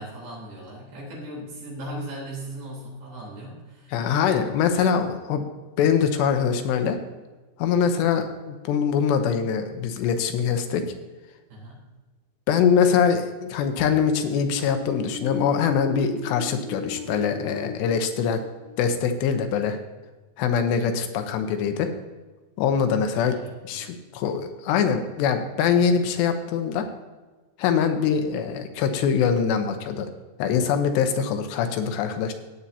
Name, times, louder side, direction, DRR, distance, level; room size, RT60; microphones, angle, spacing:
voice 1, 0.0-4.1 11.5-11.8 23.1-23.9, right 1 dB, 70° right, -5 dB, 5.8 m, -38 dB
voice 2, 3.9-5.4 5.8-7.0 7.6-10.8 12.5-18.4 18.8-19.8 20.4-21.9 22.6-23.4 23.6-26.9 27.6-30.1 30.4-32.3, left 7 dB, 80° left, 7 dB, 3.0 m, -23 dB
sound 1, 13.9-19.5, left 2 dB, 35° left, 1.6 m, -37 dB
17.0 x 8.6 x 2.8 m, 1.3 s
omnidirectional pair, 4.9 m